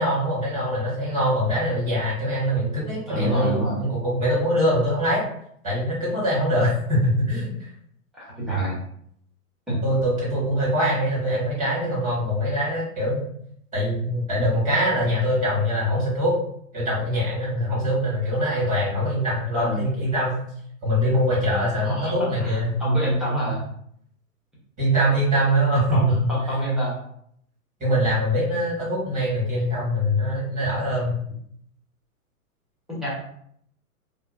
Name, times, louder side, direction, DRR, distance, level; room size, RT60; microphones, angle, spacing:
voice 1, 0.0-5.2 5.6-7.7 9.8-13.3 13.7-16.3 16.7-20.4 20.8-22.7 24.8-26.2 27.8-31.2, equal, 15° right, -7 dB, 1.4 m, -23 dB
voice 2, 3.1-3.8 8.1-8.8 9.7-9.9 19.6-19.8 21.7-23.6 25.9-26.9 32.9-33.1, right 1 dB, ahead, -8 dB, 0.8 m, -26 dB
2.8 x 2.3 x 2.3 m, 0.68 s
hypercardioid pair, 125°, 43 cm